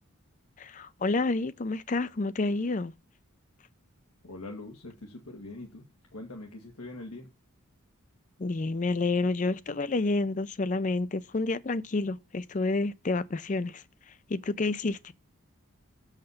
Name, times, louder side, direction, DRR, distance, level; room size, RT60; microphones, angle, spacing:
voice 1, 0.6-2.9 8.4-13.8 14.3-15.1, left 3 dB, 35° left, 0.4 m, -29 dB
voice 2, 4.2-5.8 6.1-7.3, left 2 dB, 90° left, 1.8 m, -43 dB
6.9 x 5.8 x 6.4 m
head